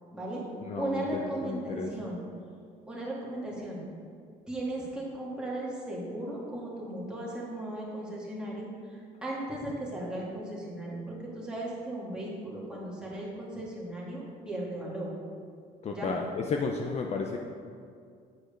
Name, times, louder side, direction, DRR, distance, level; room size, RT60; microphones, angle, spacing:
voice 1, 0.1-0.5 0.8-2.2 2.9-3.8 4.5-15.1 15.9-16.1, right 1 dB, 5° right, -6 dB, 2.2 m, -36 dB
voice 2, 0.7-1.0 1.4-1.9 15.8-17.4, left 4 dB, 40° left, 2 dB, 0.6 m, -32 dB
8.9 x 4.8 x 5.2 m, 2.2 s
cardioid pair, 110°, 17 cm